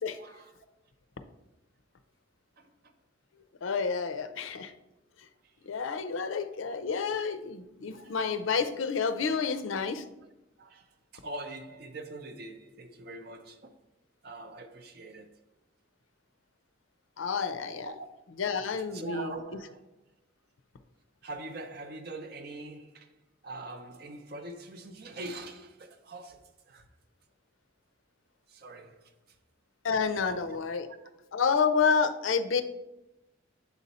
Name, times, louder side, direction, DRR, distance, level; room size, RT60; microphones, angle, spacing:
voice 1, 0.2-0.6 2.6-2.9 5.4-5.6 7.9-8.2 9.3-9.5 10.6-13.8 14.2-15.3 17.8-18.1 18.9-19.8 21.2-26.9 28.5-29.4 30.1-30.6, right 2 dB, 50° right, 0.5 m, -43 dB
voice 2, 3.6-4.7 5.6-10.0 17.2-17.9 18.4-19.3 29.8-30.9 31.3-32.6, left 5 dB, 85° left, 0.5 m, -29 dB
7.0 x 4.1 x 4.1 m
head